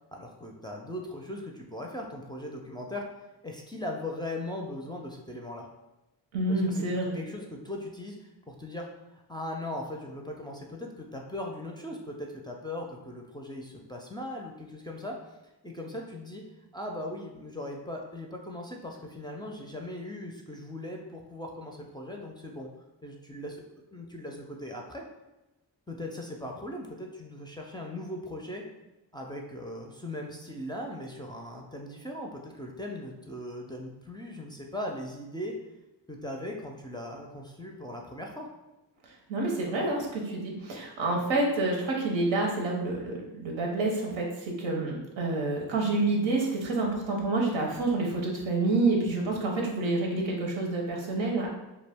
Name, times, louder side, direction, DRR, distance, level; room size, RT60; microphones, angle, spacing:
voice 1, 0.1-3.0 3.4-5.7 6.5-6.9 7.1-8.9 9.3-15.2 15.6-16.4 16.7-22.7 23.0-23.6 23.9-25.0 25.9-28.6 29.1-35.5 36.1-38.5, left 1 dB, 10° left, 0 dB, 0.4 m, -39 dB
voice 2, 6.3-7.3 39.3-51.5, right 2 dB, 85° right, 0 dB, 0.7 m, -28 dB
2.3 x 2.1 x 3.4 m, 1.0 s
cardioid pair, 45°, 45 cm